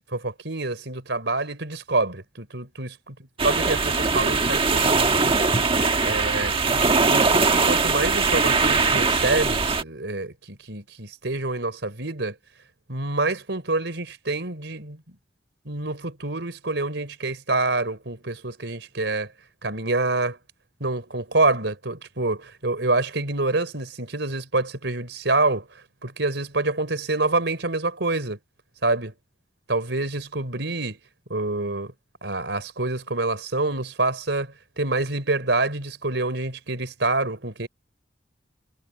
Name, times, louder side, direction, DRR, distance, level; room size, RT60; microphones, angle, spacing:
voice 1, 0.1-3.0 3.4-5.4 6.0-6.5 6.9-12.4 12.9-15.0 15.7-19.3 19.6-20.4 20.8-28.4 28.8-29.1 29.7-31.0 31.3-31.9 32.2-37.7, right 2 dB, 80° right, 3.8 m, -27 dB
sound 1, 3.4-9.8, right 4 dB, 30° right, 1.4 m, -21 dB
head